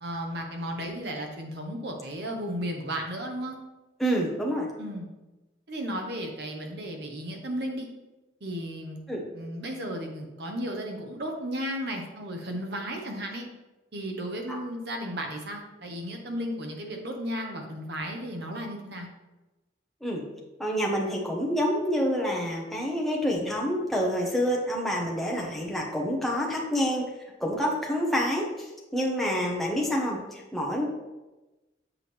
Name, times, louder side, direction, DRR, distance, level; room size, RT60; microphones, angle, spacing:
voice 1, 0.0-3.6 4.8-5.1 5.7-7.9 8.4-9.0 9.3-13.5 13.9-19.1, equal, 60° right, 2 dB, 1.1 m, -34 dB
voice 2, 4.0-4.7 9.1-9.2 14.5-14.6 20.0-20.2 20.6-27.1 27.4-28.7 28.9-30.9, equal, ahead, -3 dB, 1.1 m, -27 dB
7.4 x 4.9 x 3.4 m, 1.1 s
head